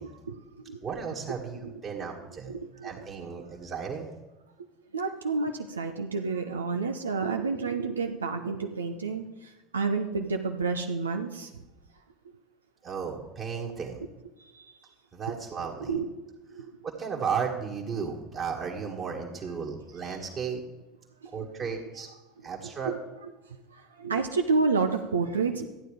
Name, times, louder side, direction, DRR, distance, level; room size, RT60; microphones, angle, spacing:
voice 1, 0.0-0.8 1.6-1.7 2.5-3.0 4.9-11.5 14.4-14.7 15.8-16.1 16.5-16.8 21.2-21.5 22.6-25.7, right 4 dB, 80° right, 4 dB, 0.7 m, -30 dB
voice 2, 0.8-2.5 2.8-4.1 12.8-14.0 15.1-15.9 16.8-20.6 21.3-22.1 22.4-22.9, right 6 dB, 35° right, -4 dB, 1.9 m, -34 dB
14.0 x 9.2 x 5.0 m, 1.1 s
figure-of-eight pair, 70°, 0 cm